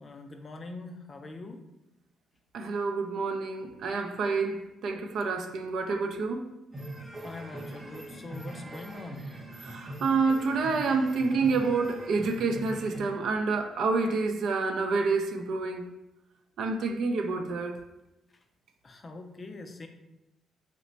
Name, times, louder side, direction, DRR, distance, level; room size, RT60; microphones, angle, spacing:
voice 1, 0.0-1.6 7.2-9.3 18.8-19.9, left 2 dB, 35° left, 5 dB, 0.4 m, -43 dB
voice 2, 2.5-6.4 9.6-15.9 16.6-17.8, right 4 dB, 70° right, 4 dB, 0.4 m, -28 dB
sound 1, 6.7-13.0, right 1 dB, 25° right, 0.7 m, -42 dB
3.1 x 2.1 x 3.9 m, 0.90 s
cardioid pair, 90°, 0 cm